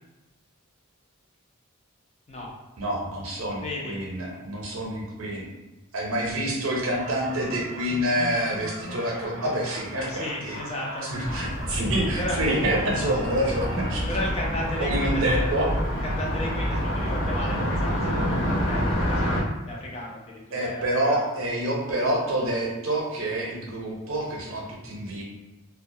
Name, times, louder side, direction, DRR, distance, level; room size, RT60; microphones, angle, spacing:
voice 1, 2.8-5.4 5.9-10.6 11.1-14.1 14.8-15.7 20.5-25.2, right 1 dB, 65° right, -1 dB, 0.6 m, -27 dB
voice 2, 3.6-4.0 10.1-11.1 12.2-12.4 14.1-15.5 16.0-19.3 19.7-21.3, left 1 dB, 30° left, -3 dB, 0.5 m, -34 dB
jungle jim, 6.9-18.9, right 1 dB, 50° left, 1.1 m, -42 dB
Car passing by, 11.2-19.4, equal, 80° left, 1.0 m, -27 dB
2.2 x 2.1 x 2.6 m, 1.1 s
head